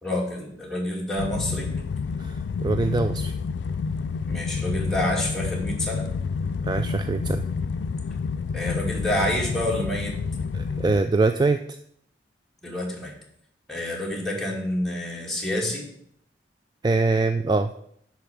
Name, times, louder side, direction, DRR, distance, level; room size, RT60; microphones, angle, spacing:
voice 1, 0.0-1.7 4.3-6.1 8.5-10.1 12.6-13.1 13.7-15.9, left 1 dB, ahead, -3 dB, 2.4 m, -28 dB
sound 1, 1.2-11.0, left 5 dB, 75° left, 0.4 m, -29 dB
voice 2, 2.2-3.3 6.6-7.5 10.5-11.6 16.8-17.7, right 3 dB, 25° right, 8 dB, 0.4 m, -23 dB
10.5 x 4.3 x 6.9 m, 0.68 s
head